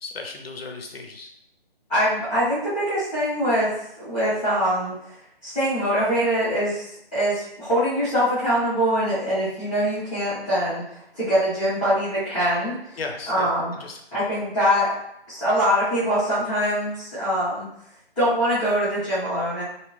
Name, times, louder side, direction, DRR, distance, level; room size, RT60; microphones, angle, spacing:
voice 1, 0.0-1.3 13.0-13.5 13.8-14.0, left 3 dB, 70° left, 4 dB, 0.6 m, -35 dB
voice 2, 1.9-3.7 4.0-5.1 5.4-13.0 13.3-13.7 14.1-14.9 15.3-17.7 18.2-19.6, equal, 10° left, -21 dB, 0.6 m, -23 dB
2.7 x 2.1 x 2.9 m, 0.76 s
figure-of-eight pair, 160°, 31 cm